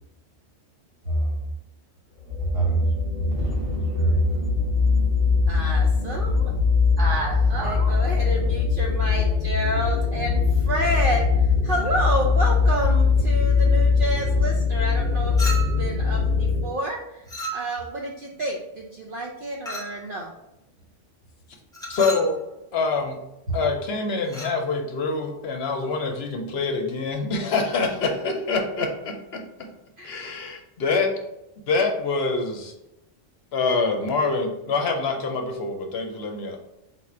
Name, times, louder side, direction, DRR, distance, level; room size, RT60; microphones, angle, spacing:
voice 1, 1.0-1.4 2.4-4.5 7.0-7.9 23.5-23.6, right 2 dB, 75° right, -5 dB, 1.8 m, -25 dB
sound 1, 2.2-16.6, left 5 dB, 35° right, 1.2 m, -22 dB
voice 2, 5.5-6.5 7.6-17.2 17.5-20.3 30.0-30.1, right 1 dB, 55° right, -2 dB, 0.6 m, -29 dB
Chink clink, 15.4-15.9 17.3-18.0 19.7-20.0 21.7-22.3 24.2-24.6, right 1 dB, 5° left, 0.7 m, -33 dB
voice 3, 21.9-22.4 22.7-23.2 23.5-29.4 30.0-31.1 31.7-32.7 33.5-36.6, left 3 dB, 65° left, 3 dB, 0.8 m, -25 dB
4.2 x 2.4 x 4.3 m, 0.89 s
omnidirectional pair, 1.2 m